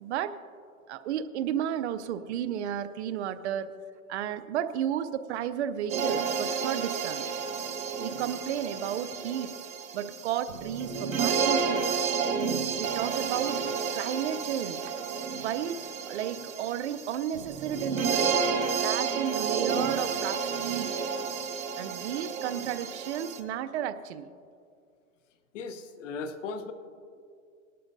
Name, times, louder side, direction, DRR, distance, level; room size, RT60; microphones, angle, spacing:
voice 1, 0.0-0.4 0.9-3.7 4.1-7.2 8.0-9.6 9.9-12.0 12.8-13.6 13.9-15.0 15.4-15.8 16.1-18.4 18.8-20.9 21.8-24.3, right 10 dB, 55° right, 12 dB, 0.7 m, -33 dB
sound 1, 5.9-23.4, right 6 dB, 85° right, 1.5 m, -31 dB
voice 2, 25.5-26.7, left 4 dB, 65° left, 10 dB, 1.0 m, -37 dB
18.5 x 12.0 x 2.7 m, 2.3 s
hypercardioid pair, 145°, 40 cm